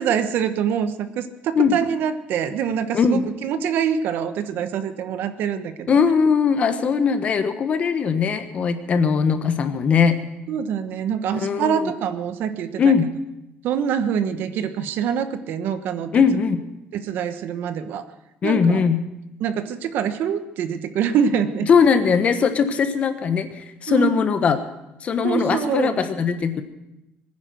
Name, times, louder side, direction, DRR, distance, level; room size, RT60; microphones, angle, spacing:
voice 1, 0.0-6.0 10.5-12.9 13.6-16.1 16.9-18.1 18.4-18.8 19.4-21.7 23.9-24.1 25.2-26.0, right 8 dB, 65° right, 10 dB, 1.1 m, -25 dB
voice 2, 2.9-3.3 5.9-10.2 11.3-11.9 12.8-13.1 16.1-16.6 18.4-19.0 21.7-24.6 25.0-26.6, left 6 dB, 35° left, 9 dB, 1.2 m, -20 dB
21.0 x 9.9 x 6.4 m, 0.93 s
cardioid pair, 165°, 4 cm